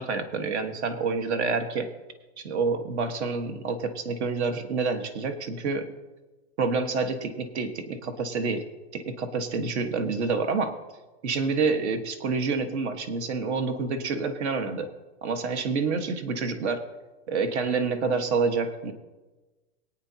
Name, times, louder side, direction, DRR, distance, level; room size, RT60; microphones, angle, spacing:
voice 1, 0.0-1.9 2.4-5.9 6.6-8.6 8.9-10.8 11.2-14.9 15.2-16.8 17.3-18.9, right 4 dB, 75° right, 7 dB, 1.6 m, -28 dB
22.5 x 8.8 x 2.9 m, 1.2 s
supercardioid pair, 165°, 34 cm